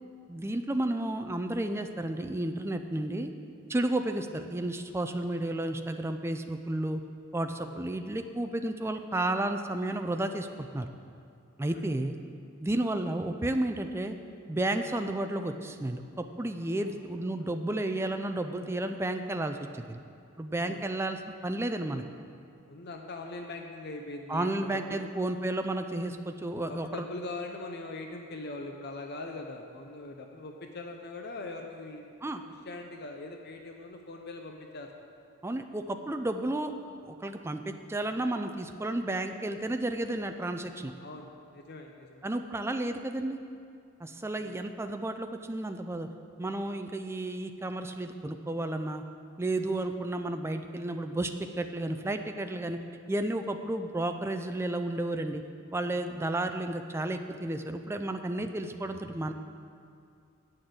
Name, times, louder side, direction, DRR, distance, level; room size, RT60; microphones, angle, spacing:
voice 1, 0.3-3.3 3.7-7.0 7.3-10.9 11.6-12.2 12.6-14.1 14.5-20.0 20.4-22.0 24.3-27.0 32.2-32.4 35.4-36.7 37.0-40.9 42.2-43.4 44.0-46.1 46.4-49.0 49.4-51.3 51.6-52.8 53.1-55.4 55.7-59.3, right 1 dB, 10° right, 7 dB, 0.4 m, -32 dB
voice 2, 22.7-25.0 26.5-32.1 32.5-34.9 41.0-42.2 44.4-44.6, left 2 dB, 50° left, 3 dB, 0.6 m, -41 dB
8.6 x 6.4 x 7.7 m, 2.5 s
head